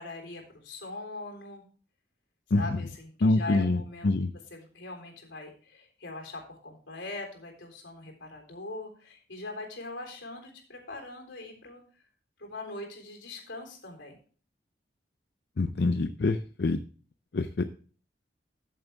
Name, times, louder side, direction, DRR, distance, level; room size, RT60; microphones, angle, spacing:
voice 1, 0.0-1.6 2.5-4.1 4.5-11.8 12.4-14.2, left 2 dB, 85° left, 2 dB, 3.7 m, -41 dB
voice 2, 2.5-2.8 3.2-4.3 15.6-16.8 17.3-17.6, left 2 dB, 60° left, 9 dB, 0.5 m, -26 dB
13.5 x 7.4 x 3.5 m, 0.41 s
head